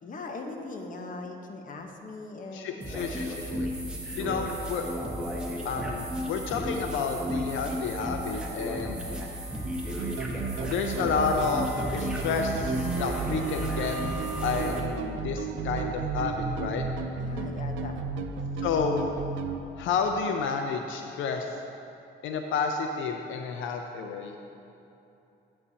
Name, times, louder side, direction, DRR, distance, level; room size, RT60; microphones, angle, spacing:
voice 1, 0.0-3.2 8.9-9.3 17.2-18.5, left 3 dB, 40° left, 3 dB, 0.9 m, -41 dB
voice 2, 2.5-3.7 4.1-4.8 5.6-9.0 10.6-14.0 14.4-16.8 18.6-19.1 19.8-21.5 22.2-24.3, left 5 dB, 80° left, 4 dB, 0.5 m, -30 dB
sound 1, 2.8-14.8, equal, 5° right, 1.4 m, -34 dB
sound 2, 10.0-19.6, right 5 dB, 80° right, 0.5 m, -33 dB
10.5 x 8.5 x 2.8 m, 2.8 s
cardioid pair, 90°, 20 cm